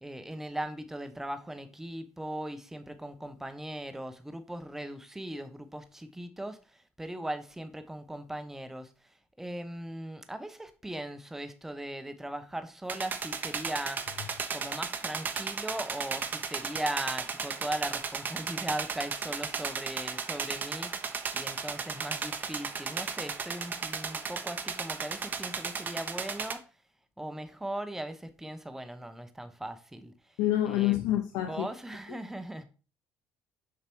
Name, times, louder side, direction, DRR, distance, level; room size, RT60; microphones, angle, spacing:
voice 1, 0.0-8.9 9.4-14.0 14.5-20.9 21.3-26.6 27.2-30.1 30.6-31.0 31.4-32.6, right 1 dB, 5° right, 1.0 m, -38 dB
sound 1, 12.9-26.5, right 5 dB, 35° right, 1.0 m, -35 dB
voice 2, 30.4-31.7 32.1-32.2, left 13 dB, 90° left, 0.7 m, -27 dB
6.8 x 4.8 x 4.6 m
cardioid pair, 115°, 6 cm